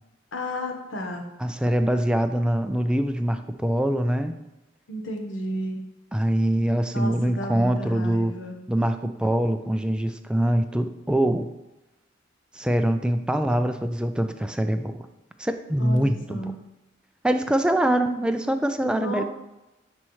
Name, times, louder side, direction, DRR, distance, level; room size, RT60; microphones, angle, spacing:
voice 1, 0.3-1.2 4.9-5.9 6.9-8.6 15.8-16.6 18.8-19.2, equal, 75° left, 3 dB, 1.1 m, -32 dB
voice 2, 1.4-4.3 6.1-8.3 8.7-11.5 12.5-15.1 15.4-16.5 17.2-19.2, right 1 dB, 5° right, 7 dB, 0.3 m, -24 dB
9.9 x 4.3 x 3.1 m, 0.97 s
head